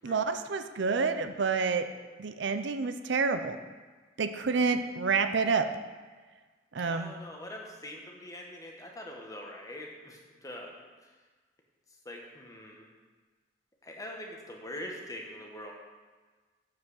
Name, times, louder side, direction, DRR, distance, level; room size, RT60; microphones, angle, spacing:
voice 1, 0.0-1.9 2.2-3.6 4.2-5.7 6.7-7.1, right 4 dB, 65° right, 9 dB, 0.5 m, -28 dB
voice 2, 6.8-10.8 12.0-12.9 13.8-15.7, left 1 dB, 20° left, 0 dB, 1.1 m, -43 dB
7.4 x 6.1 x 6.4 m, 1.4 s
head